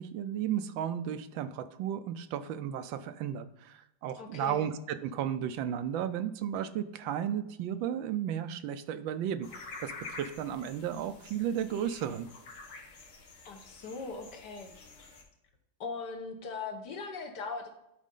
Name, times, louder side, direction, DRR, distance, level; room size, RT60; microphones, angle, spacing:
voice 1, 0.0-12.3, right 9 dB, 80° right, 11 dB, 1.3 m, -34 dB
voice 2, 4.2-4.7 13.4-14.7 15.8-17.7, left 4 dB, 60° left, 4 dB, 1.5 m, -40 dB
sound 1, 9.4-15.2, left 3 dB, 85° left, 2.3 m, -48 dB
11.5 x 4.2 x 3.7 m, 0.86 s
omnidirectional pair, 2.2 m